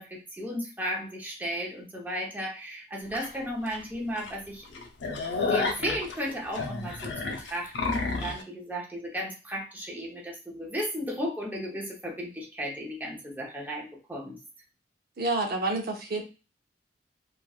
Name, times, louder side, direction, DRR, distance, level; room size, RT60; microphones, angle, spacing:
voice 1, 0.0-4.7 5.5-14.4, equal, 10° right, -3 dB, 0.7 m, -35 dB
sound 1, 3.1-3.3 3.7-3.8 4.2-4.3 4.6-8.4, left 3 dB, 90° left, 0.6 m, -30 dB
voice 2, 15.2-16.2, right 2 dB, 60° right, 2 dB, 0.6 m, -28 dB
3.1 x 2.5 x 2.3 m, 0.30 s
head